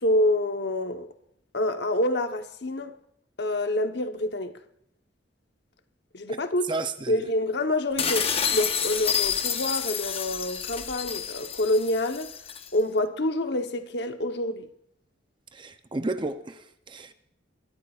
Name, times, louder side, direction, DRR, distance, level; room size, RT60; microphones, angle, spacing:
voice 1, 0.0-1.1 1.5-2.9 3.4-4.6 6.1-6.7 7.1-12.3 12.7-14.7, left 1 dB, 65° left, 1.0 m, -27 dB
voice 2, 6.3-7.3 15.5-17.1, right 2 dB, 25° right, 0.6 m, -33 dB
sound 1, 8.0-12.7, left 7 dB, 30° left, 0.8 m, -29 dB
20.5 x 14.0 x 2.4 m
head